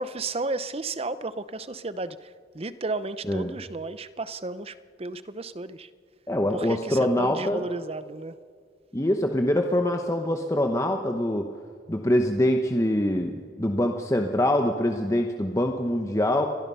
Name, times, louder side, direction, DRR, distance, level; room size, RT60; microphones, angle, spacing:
voice 1, 0.0-5.9 6.5-8.3, right 3 dB, 30° right, 0.7 m, -33 dB
voice 2, 6.3-7.6 8.9-11.5 11.9-16.5, left 1 dB, 15° left, 1.0 m, -24 dB
29.0 x 23.5 x 5.6 m
head